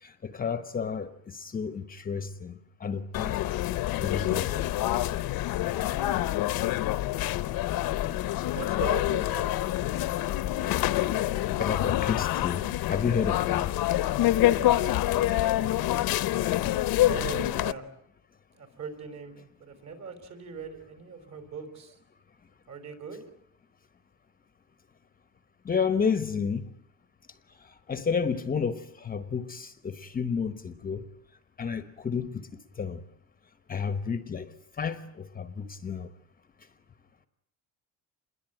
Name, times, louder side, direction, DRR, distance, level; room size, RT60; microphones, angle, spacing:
voice 1, 0.0-3.6 4.0-4.7 11.6-13.7 25.6-26.7 27.6-31.0 31.6-32.5 32.8-33.0 33.7-36.1, left 6 dB, 25° left, 1.0 m, -31 dB
sound 1, 3.1-17.7, left 14 dB, 70° left, 1.0 m, -27 dB
voice 2, 8.5-9.6 17.0-17.9 18.5-19.3 19.6-21.9 22.7-23.2, right 5 dB, 45° right, 4.8 m, -39 dB
27.5 x 21.5 x 9.1 m
cardioid pair, 175°, 37 cm